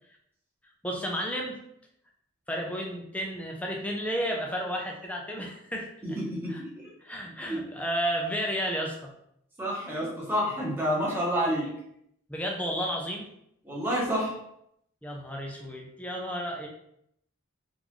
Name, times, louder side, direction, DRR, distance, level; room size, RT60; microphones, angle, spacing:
voice 1, 0.8-1.5 2.5-5.9 6.5-6.6 7.0-9.1 12.3-13.3 15.0-16.7, equal, 5° left, 0 dB, 0.4 m, -32 dB
voice 2, 6.0-6.9 7.4-7.6 9.6-11.7 13.6-14.3, equal, 10° right, -5 dB, 1.0 m, -29 dB
3.8 x 2.5 x 3.0 m, 0.74 s
head